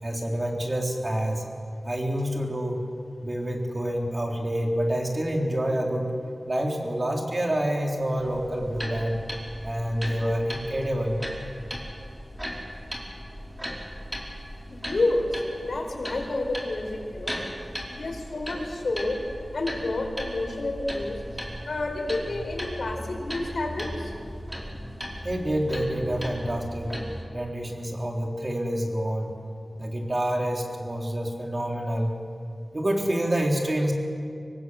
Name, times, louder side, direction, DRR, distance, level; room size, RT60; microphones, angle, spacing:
voice 1, 0.0-1.4 1.8-2.8 3.2-6.1 6.5-9.2 9.6-11.2 25.2-27.0 27.3-29.3 29.8-32.1 32.7-33.9, right 1 dB, 35° right, 0 dB, 3.8 m, -27 dB
sound 1, 8.2-27.2, equal, 15° right, 4.7 m, -37 dB
voice 2, 14.7-17.4 17.9-19.2 19.5-21.1 21.7-24.1, left 2 dB, 80° left, 1 dB, 4.7 m, -29 dB
25.5 x 19.0 x 8.0 m, 2.4 s
wide cardioid pair, 75°, 0 cm